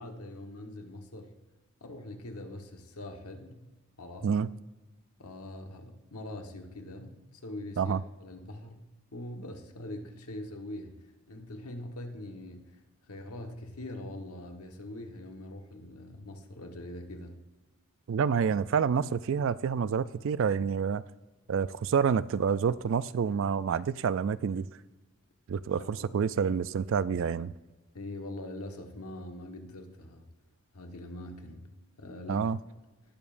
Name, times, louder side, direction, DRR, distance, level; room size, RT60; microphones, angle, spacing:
voice 1, 0.0-1.3 1.8-3.7 4.0-4.4 5.2-8.8 9.1-12.8 13.1-17.3 25.7-26.2 27.9-30.3 30.7-31.7 32.0-32.5, left 1 dB, 90° left, 1.3 m, -43 dB
voice 2, 18.1-21.0 21.5-24.7 25.5-27.5 32.3-32.6, right 6 dB, 60° right, 0.3 m, -28 dB
19.0 x 7.1 x 2.6 m
head